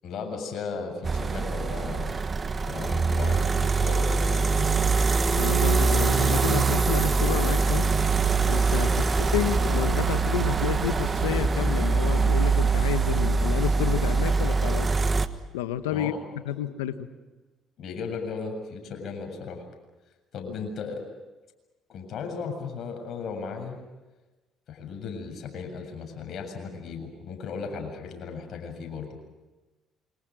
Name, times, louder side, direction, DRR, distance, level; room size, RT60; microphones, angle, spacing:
voice 1, 0.0-2.2 2.6-4.8 8.8-9.0 15.9-16.2 17.8-19.6 20.3-21.1 21.9-23.8 24.7-29.2, left 5 dB, 60° left, 4 dB, 7.4 m, -36 dB
sound 1, 1.0-15.3, right 4 dB, 35° right, 1.5 m, -23 dB
voice 2, 5.4-7.9 8.5-9.0 9.3-14.9 15.5-16.1 16.5-17.1, left 11 dB, 90° left, 11 dB, 1.3 m, -30 dB
28.0 x 25.5 x 6.4 m, 1.2 s
hypercardioid pair, 60°, 0 cm